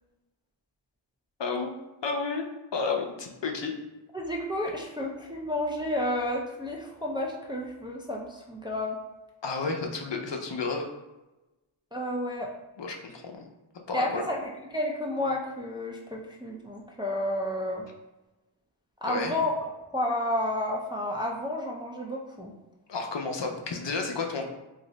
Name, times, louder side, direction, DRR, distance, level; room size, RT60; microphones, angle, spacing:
voice 1, 1.4-1.8 2.0-2.5 2.7-3.8 9.4-10.9 12.8-13.5 13.9-14.2 19.0-19.4 22.9-24.5, left 4 dB, 60° left, 3 dB, 0.5 m, -31 dB
voice 2, 4.1-9.0 11.9-12.5 13.9-17.8 19.0-19.5 19.9-22.5, left 1 dB, 10° right, -1 dB, 0.3 m, -31 dB
2.6 x 2.1 x 3.8 m, 1.1 s
wide cardioid pair, 45°, 49 cm